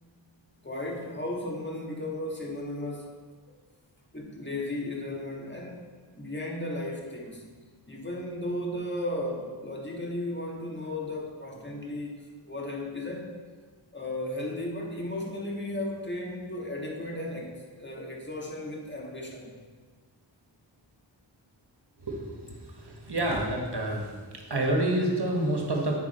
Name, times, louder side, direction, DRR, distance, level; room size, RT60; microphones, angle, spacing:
voice 1, 0.6-3.1 4.1-5.8 6.2-7.4 7.9-12.1 12.4-13.3 13.9-19.5 23.9-24.0, left 1 dB, 25° left, -1 dB, 1.7 m, -35 dB
voice 2, 22.0-22.4 22.9-24.1 24.5-26.0, right 1 dB, 60° right, 0 dB, 1.6 m, -27 dB
8.6 x 6.0 x 4.3 m, 1.4 s
wide cardioid pair, 50°, 46 cm